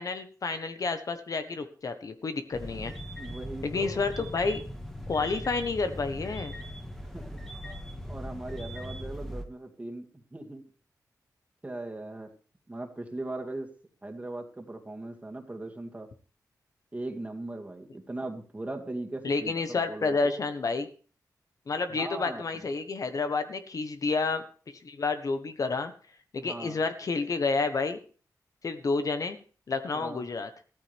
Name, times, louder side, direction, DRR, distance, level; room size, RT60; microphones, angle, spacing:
voice 1, 0.0-2.9 3.6-4.6 5.1-6.6 19.2-20.9 21.7-24.5 24.8-25.9 26.3-28.0 28.6-29.4 29.7-30.5, left 4 dB, 55° left, 9 dB, 1.2 m, -30 dB
sound 1, 2.5-9.4, equal, 5° left, 1.9 m, -39 dB
voice 2, 3.2-4.0 7.0-7.4 8.1-10.6 11.6-12.3 12.7-13.7 14.0-16.1 16.9-20.5 21.9-22.6 26.4-26.8 29.9-30.2, right 2 dB, 20° right, 3 dB, 2.2 m, -39 dB
14.5 x 13.5 x 3.5 m, 0.39 s
wide cardioid pair, 85°, 7 cm